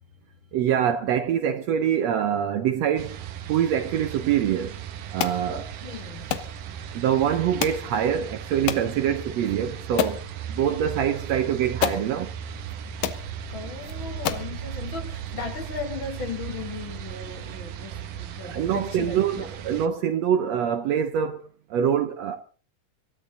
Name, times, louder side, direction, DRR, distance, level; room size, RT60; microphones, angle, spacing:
voice 1, 0.5-3.2 3.5-4.8 5.1-5.7 6.9-12.3 18.4-22.4, right 9 dB, 70° right, 1.8 m, -25 dB
sound 1, 3.0-19.9, right 8 dB, 90° right, 2.8 m, -37 dB
Alarm clock hit snooze button, 5.2-5.4 6.3-6.5 7.6-7.9 8.7-8.9 9.5-9.6 10.0-10.2 11.3-11.4 11.8-12.1 12.7-12.8 13.0-13.2 13.8-13.9 14.3-14.5, left 11 dB, 90° left, 2.8 m, -27 dB
voice 2, 5.5-6.3 13.5-19.5, left 5 dB, 40° left, 2.5 m, -37 dB
25.0 x 13.0 x 3.9 m
omnidirectional pair, 3.7 m